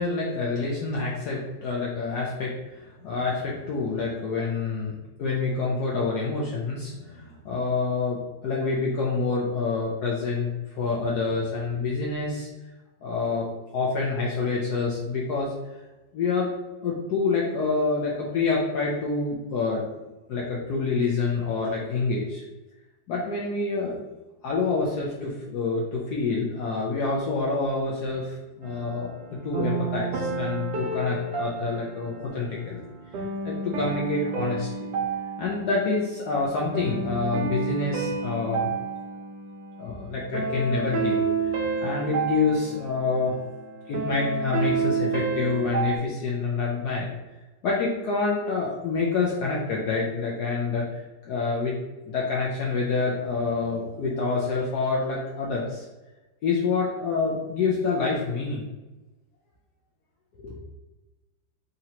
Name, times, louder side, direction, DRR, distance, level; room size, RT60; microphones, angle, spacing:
voice 1, 0.0-12.5 13.0-13.5 13.7-15.5 16.1-16.5 16.8-19.8 20.3-22.4 23.1-24.0 24.4-29.1 29.4-32.8 33.1-34.9 35.4-38.7 39.8-43.3 43.9-47.1 47.6-50.8 51.2-55.8 56.4-58.7 60.4-60.6, left 4 dB, 65° left, -4 dB, 1.1 m, -27 dB
sound 1, 28.6-46.0, right 4 dB, 70° right, 1.2 m, -30 dB
3.8 x 2.8 x 4.3 m, 1.1 s
omnidirectional pair, 2.1 m